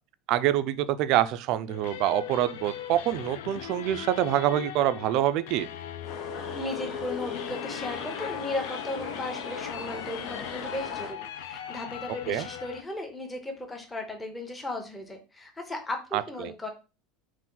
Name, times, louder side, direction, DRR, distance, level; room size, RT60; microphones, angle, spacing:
voice 1, 0.3-5.7 12.3-12.5 16.1-16.5, right 12 dB, 45° right, 0.3 m, -26 dB
sound 1, 1.7-12.8, left 10 dB, 80° left, 0.4 m, -39 dB
sound 2, 6.0-11.1, left 5 dB, 45° left, 0.7 m, -38 dB
voice 2, 6.5-16.7, left 1 dB, 10° left, 0.7 m, -36 dB
4.1 x 2.5 x 3.7 m
supercardioid pair, 165°, 0 cm